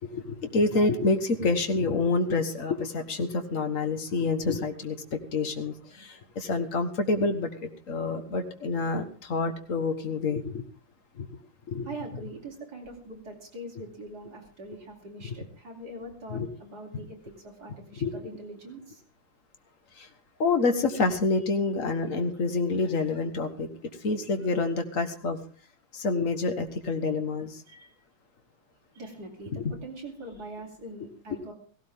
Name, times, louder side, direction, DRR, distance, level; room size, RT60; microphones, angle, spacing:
voice 1, 0.0-10.6 11.2-11.3 11.7-11.9 16.3-16.5 18.0-18.1 19.9-20.1 20.4-23.7 24.0-25.4 25.9-27.6 29.5-29.7, left 3 dB, 45° left, 7 dB, 1.7 m, -27 dB
voice 2, 11.8-19.0 27.7-27.9 28.9-31.5, right 2 dB, 50° right, 0 dB, 4.0 m, -42 dB
17.0 x 17.0 x 3.7 m, 0.40 s
omnidirectional pair, 2.2 m